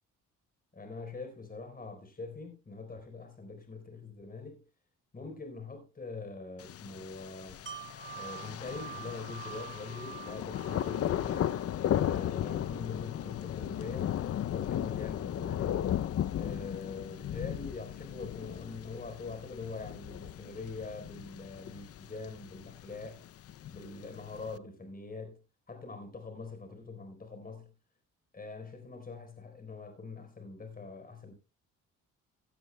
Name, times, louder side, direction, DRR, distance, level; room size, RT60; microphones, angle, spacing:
voice 1, 0.7-4.6 5.1-7.6 8.1-11.6 12.0-14.1 14.5-15.8 16.4-23.3 23.7-25.4 25.7-27.7 28.3-31.3, left 4 dB, 30° left, 4.0 m, -43 dB
Thunder, 6.6-24.6, left 11 dB, 50° left, 0.5 m, -36 dB
Wind chime, 7.7-13.5 13.9-14.0, right 10 dB, 40° right, 2.7 m, -48 dB
17.0 x 12.0 x 2.2 m
cardioid pair, 90°, 30 cm